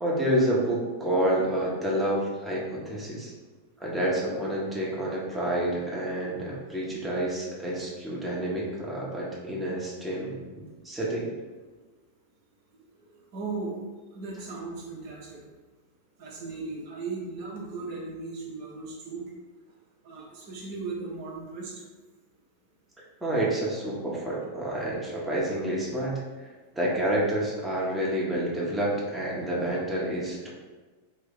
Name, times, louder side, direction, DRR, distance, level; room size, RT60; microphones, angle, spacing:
voice 1, 0.0-3.3 3.8-11.3 23.2-26.5 26.7-30.5, right 1 dB, 5° right, -5 dB, 0.9 m, -29 dB
voice 2, 13.3-13.7 14.1-15.4 16.2-19.2 20.0-21.7, right 3 dB, 50° right, -3 dB, 0.8 m, -37 dB
3.8 x 2.7 x 3.5 m, 1.3 s
figure-of-eight pair, 90°, 0 cm